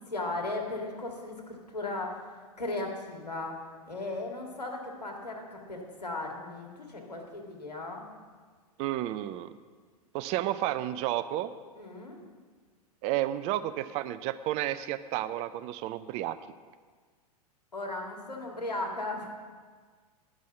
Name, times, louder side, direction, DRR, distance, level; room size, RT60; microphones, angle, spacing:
voice 1, 0.0-8.1 11.8-12.2 17.7-19.3, left 2 dB, 85° left, 0 dB, 1.8 m, -37 dB
voice 2, 8.8-9.5 10.1-11.5 13.0-16.4, right 13 dB, 30° right, 13 dB, 0.4 m, -31 dB
10.0 x 6.1 x 7.3 m, 1.5 s
figure-of-eight pair, 100°, 20 cm